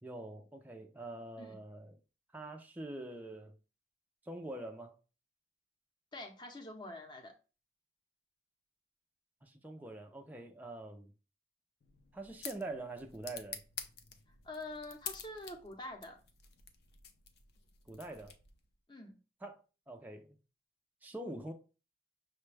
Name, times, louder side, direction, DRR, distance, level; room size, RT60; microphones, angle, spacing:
voice 1, 0.0-2.0 2.3-3.5 4.2-4.9 9.4-11.1 12.1-13.6 17.9-18.4 19.4-19.6 19.9-20.4 21.0-21.5, right 2 dB, 10° right, 0.4 m, -45 dB
voice 2, 6.1-7.3 14.4-16.2 18.9-19.1, left 2 dB, 25° left, 0.7 m, -46 dB
sound 1, 11.8-18.7, left 7 dB, 65° left, 0.5 m, -49 dB
5.9 x 2.2 x 3.2 m
head